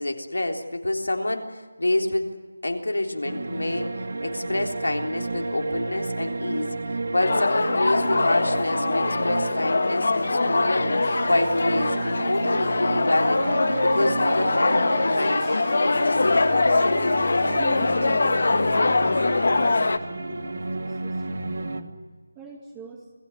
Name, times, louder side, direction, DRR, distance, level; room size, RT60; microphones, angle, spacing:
voice 1, 0.0-2.4 2.6-3.9 4.2-6.8 7.1-10.9 11.2-13.5 13.8-16.6, left 1 dB, 85° left, 3 dB, 3.5 m, -27 dB
sound 1, 3.2-21.8, right 3 dB, 65° right, 2.2 m, -31 dB
sound 2, 7.2-20.0, left 3 dB, 60° left, 1.5 m, -23 dB
Harp, 10.9-19.9, left 5 dB, 20° left, 3.5 m, -43 dB
voice 2, 17.1-21.9 22.3-23.1, right 4 dB, 15° right, 2 dB, 2.2 m, -44 dB
27.5 x 17.0 x 9.8 m, 1.4 s
figure-of-eight pair, 165°, 0 cm